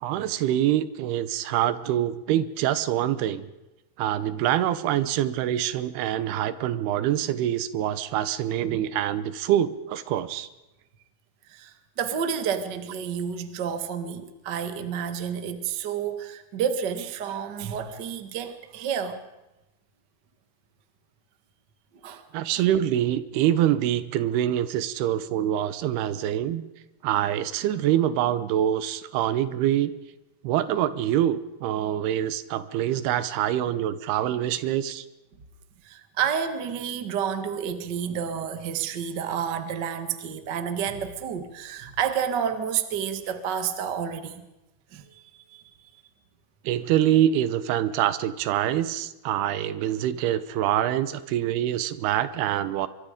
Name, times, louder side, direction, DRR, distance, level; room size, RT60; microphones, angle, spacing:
voice 1, 0.0-3.5 4.0-10.5 22.3-26.6 27.0-29.9 30.4-35.0 46.6-52.9, right 11 dB, 80° right, 14 dB, 2.8 m, -25 dB
voice 2, 11.5-19.2 22.0-22.2 35.8-44.5 44.9-45.6 45.9-46.0, right 7 dB, 50° right, 8 dB, 1.2 m, -30 dB
25.0 x 23.0 x 5.2 m, 1.0 s
omnidirectional pair, 4.6 m